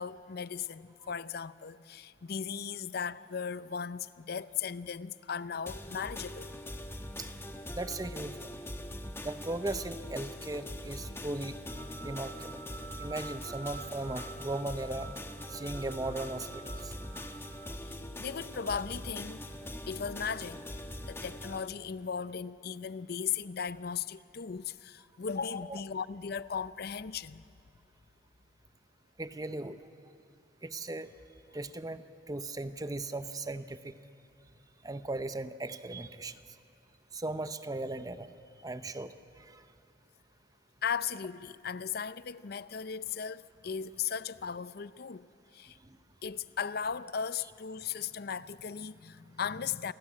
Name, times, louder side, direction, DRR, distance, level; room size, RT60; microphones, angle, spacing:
voice 1, 0.0-6.5 17.8-19.4 19.9-20.7 21.0-27.4 40.8-45.3 45.5-45.8 46.2-49.9, left 7 dB, 55° left, 0.5 m, -37 dB
sound 1, 5.7-21.7, left 1 dB, 15° left, 1.1 m, -42 dB
voice 2, 7.7-8.5 9.2-11.6 12.0-12.6 13.0-15.1 15.5-16.9 25.6-25.8 29.2-29.8 30.6-31.1 31.5-32.0 32.3-34.0 34.8-36.4 37.1-38.3 38.6-39.6 45.8-46.0, right 2 dB, 20° right, 0.7 m, -37 dB
sound 2, 11.7-17.9, right 5 dB, 85° right, 1.9 m, -49 dB
27.5 x 19.0 x 8.6 m
head